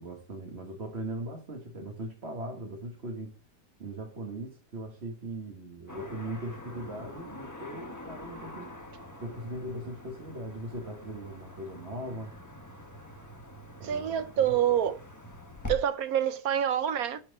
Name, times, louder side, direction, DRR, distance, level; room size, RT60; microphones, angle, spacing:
voice 1, 0.0-3.3 3.8-8.7 9.2-12.3 13.8-14.6, right 1 dB, 40° right, 1.9 m, -39 dB
Car passing by / Traffic noise roadway noise, 5.9-15.8, left 1 dB, 10° left, 1.1 m, -45 dB
voice 2, 13.8-15.0 15.7-17.2, right 10 dB, 70° right, 1.0 m, -27 dB
9.0 x 4.5 x 5.4 m
omnidirectional pair, 1.8 m